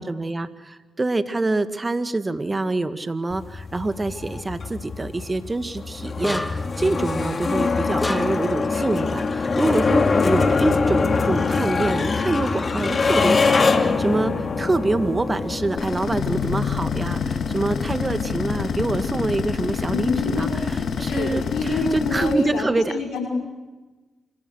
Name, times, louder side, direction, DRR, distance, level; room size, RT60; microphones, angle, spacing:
voice 1, 0.0-22.9, right 2 dB, 30° right, 10 dB, 2.2 m, -26 dB
sound 1, 3.3-22.6, left 4 dB, 45° left, 2.5 m, -25 dB
sound 2, 6.2-6.8 8.0-8.6, left 1 dB, 15° left, 2.2 m, -29 dB
sound 3, 15.8-22.3, left 6 dB, 65° left, 2.3 m, -27 dB
voice 2, 19.9-20.5 21.0-23.3, left 3 dB, 80° left, 1 dB, 5.6 m, -27 dB
28.0 x 26.0 x 6.5 m, 1.2 s
supercardioid pair, 50°, 0 cm